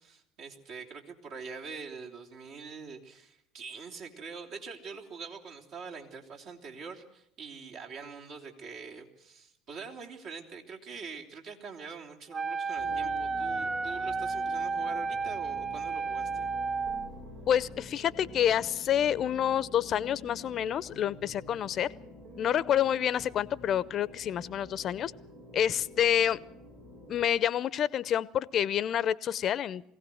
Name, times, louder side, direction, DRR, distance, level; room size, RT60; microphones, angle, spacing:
voice 1, 0.0-16.5, right 5 dB, 55° right, 1 dB, 3.6 m, -44 dB
Wind instrument woodwind instrument, 12.3-17.1, right 4 dB, 25° right, 0.8 m, -32 dB
sound 1, 12.7-27.3, left 1 dB, 80° right, 6.9 m, -48 dB
voice 2, 17.5-21.9 22.4-25.1 25.5-26.4 27.1-29.8, left 10 dB, 45° left, 19 dB, 0.9 m, -28 dB
22.5 x 17.0 x 7.9 m, 0.80 s
hypercardioid pair, 70°, 0 cm